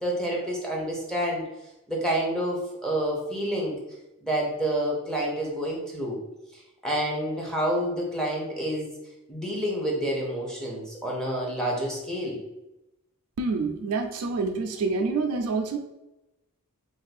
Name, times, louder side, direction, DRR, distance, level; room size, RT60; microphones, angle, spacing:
voice 1, 0.0-1.4 1.9-3.8 4.2-6.2 6.8-8.9 9.3-12.4, right 1 dB, 5° left, -3 dB, 0.7 m, -28 dB
voice 2, 13.4-15.8, right 4 dB, 75° right, 4 dB, 0.4 m, -27 dB
2.5 x 2.3 x 4.1 m, 0.95 s
head